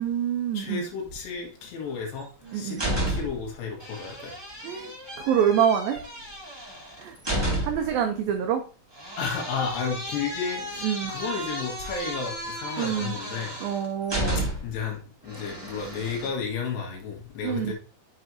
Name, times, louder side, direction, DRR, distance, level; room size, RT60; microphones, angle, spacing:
voice 1, 0.0-0.8 2.5-2.8 4.6-4.9 5.2-6.0 7.0-7.2 7.6-8.6 10.8-11.1 12.8-13.2 13.6-14.4 17.4-17.7, right 9 dB, 85° right, 2.0 m, -26 dB
voice 2, 0.5-2.3 2.5-2.8 3.1-4.4 9.2-13.6 14.6-17.7, left 5 dB, 75° left, 3.8 m, -32 dB
sound 1, 2.2-3.5 3.8-7.9 8.9-14.8 15.3-16.3, right 1 dB, 30° right, 0.4 m, -33 dB
8.1 x 6.1 x 2.7 m
omnidirectional pair, 5.0 m